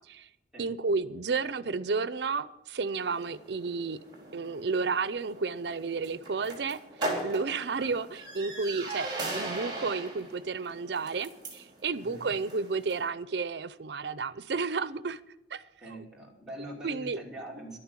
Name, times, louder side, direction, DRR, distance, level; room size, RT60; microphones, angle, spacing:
voice 1, 0.6-4.0 4.3-6.8 7.2-15.2 15.5-15.6 16.8-17.2, right 4 dB, 65° right, 0.6 m, -32 dB
sound 1, 3.0-13.1, right 2 dB, 25° right, 4.2 m, -39 dB
voice 2, 12.0-12.3 15.8-17.8, equal, 5° right, 2.8 m, -43 dB
12.0 x 10.0 x 7.4 m
head